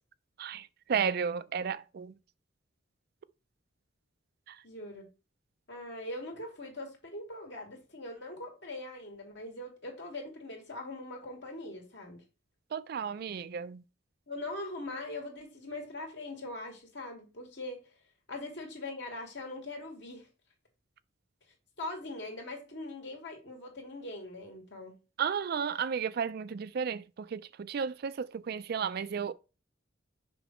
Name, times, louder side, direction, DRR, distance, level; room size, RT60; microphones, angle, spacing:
voice 1, 0.4-2.1 4.5-4.6 12.7-13.8 25.2-29.3, right 7 dB, 55° right, 0.4 m, -33 dB
voice 2, 4.6-5.1 5.7-12.2 14.3-17.8 18.3-20.3 21.8-24.9, left 2 dB, 65° left, 2.5 m, -41 dB
6.4 x 5.2 x 3.1 m
head